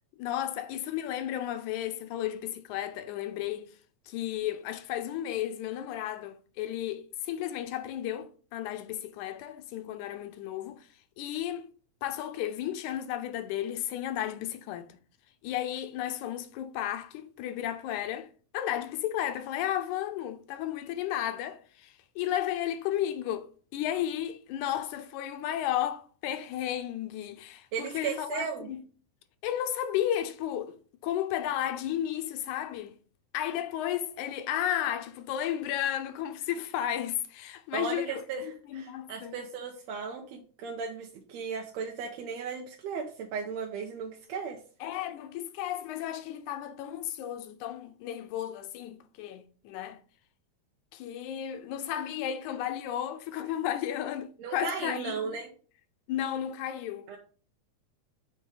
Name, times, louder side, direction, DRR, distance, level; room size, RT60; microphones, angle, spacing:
voice 1, 0.1-3.7 4.1-10.9 11.2-11.7 12.0-15.0 15.4-18.3 18.5-28.8 29.4-33.0 33.3-39.3 44.8-50.0 50.9-55.4 56.1-57.2, left 11 dB, 85° left, 2.0 m, -33 dB
voice 2, 27.7-28.7 37.7-44.6 54.4-55.5 57.1-57.2, right 6 dB, 70° right, 1.9 m, -36 dB
6.9 x 3.0 x 4.7 m
omnidirectional pair, 3.5 m